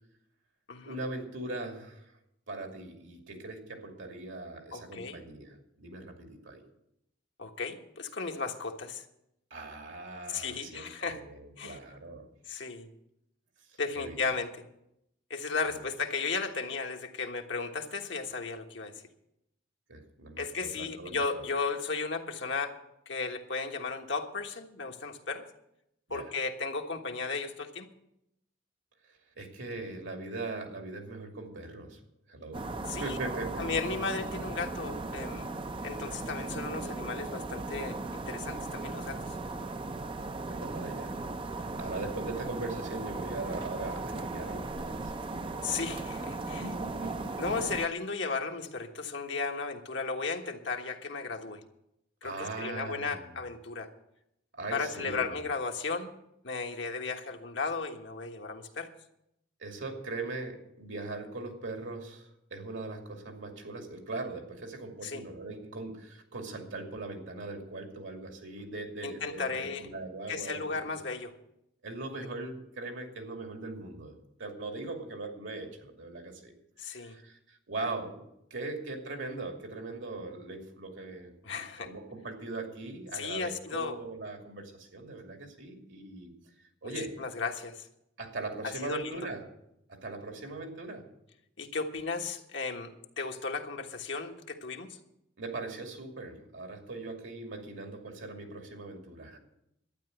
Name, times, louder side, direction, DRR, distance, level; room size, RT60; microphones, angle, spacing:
voice 1, 0.9-2.1 2.5-6.6 9.5-12.3 13.7-14.2 15.7-15.9 19.9-21.2 26.1-26.3 29.4-32.0 32.3-33.7 40.5-41.1 41.5-45.2 46.5-47.3 52.2-53.2 54.6-55.4 59.6-70.9 71.8-74.1 74.4-76.5 76.9-86.3 86.8-87.1 88.2-89.4 89.9-91.0 95.4-99.4, right 2 dB, 80° right, 3 dB, 2.5 m, -40 dB
voice 2, 4.7-5.2 7.4-9.0 10.3-11.2 11.6-11.8 12.5-12.9 13.8-14.6 15.3-19.0 20.4-22.8 23.1-25.4 26.1-27.9 32.9-33.2 33.6-35.5 35.8-39.2 45.6-46.7 47.4-51.6 52.2-53.9 54.7-56.1 56.4-58.9 65.0-65.2 69.0-69.9 70.3-71.3 76.8-77.2 81.4-81.9 83.1-84.0 86.8-87.9 88.6-89.2 91.6-95.0, left 4 dB, 70° left, 4 dB, 1.4 m, -35 dB
sound 1, 32.5-47.9, right 2 dB, 25° right, 0.5 m, -37 dB
12.0 x 9.7 x 7.8 m, 0.80 s
head